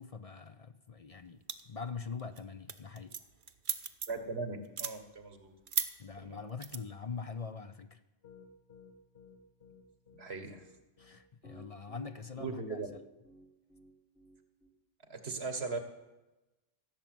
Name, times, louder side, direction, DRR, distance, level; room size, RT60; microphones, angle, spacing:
voice 1, 0.0-3.1 6.0-8.0 11.0-13.0, left 5 dB, 40° left, 9 dB, 0.6 m, -43 dB
sound 1, 1.5-1.8 2.2-2.4 2.7-4.3 4.6-4.9 5.7-5.9 6.6-6.8, right 6 dB, 55° right, 1.0 m, -35 dB
voice 2, 4.1-5.5 6.2-6.4 10.2-10.6 12.4-12.9 15.1-15.8, right 3 dB, 85° right, 8 dB, 1.8 m, -39 dB
Piano, 8.2-14.7, left 2 dB, 75° left, 2.3 m, -56 dB
16.0 x 7.1 x 9.3 m, 1.0 s
omnidirectional pair, 1.0 m